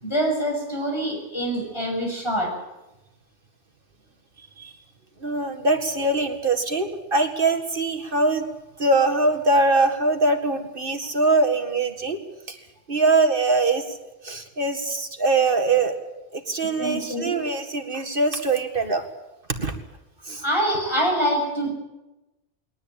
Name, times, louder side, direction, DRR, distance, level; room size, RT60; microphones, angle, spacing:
voice 1, 0.0-2.5 16.8-17.3 20.4-21.7, equal, 25° left, 0 dB, 7.1 m, -25 dB
voice 2, 5.2-8.4 8.8-12.2 12.5-12.6 12.9-13.8 14.2-15.9 16.3-19.0 19.6-19.7 20.3-20.4, right 3 dB, 50° right, 6 dB, 2.3 m, -22 dB
21.5 x 18.5 x 8.9 m, 1.0 s
omnidirectional pair, 1.2 m